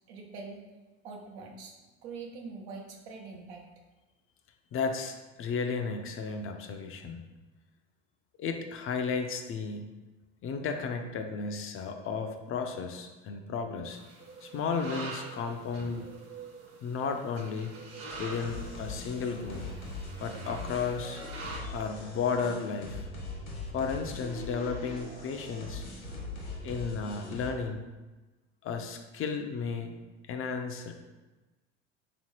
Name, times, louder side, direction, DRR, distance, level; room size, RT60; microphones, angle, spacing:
voice 1, 0.1-0.6 1.0-1.8 2.0-3.7, right 4 dB, 80° right, 0 dB, 0.8 m, -43 dB
voice 2, 4.7-7.2 8.4-9.9 10.4-14.0 14.4-16.3 16.8-17.7 18.2-19.7 20.2-21.2 21.6-23.0 23.7-25.8 26.6-27.8 28.6-30.0 30.3-30.9, left 5 dB, 40° left, 5 dB, 0.5 m, -33 dB
sound 1, 13.9-21.6, right 3 dB, 45° right, 0.9 m, -45 dB
sound 2, 18.1-27.5, left 2 dB, 75° left, 1.3 m, -41 dB
3.4 x 2.9 x 3.1 m, 1.2 s
hypercardioid pair, 80°, 32 cm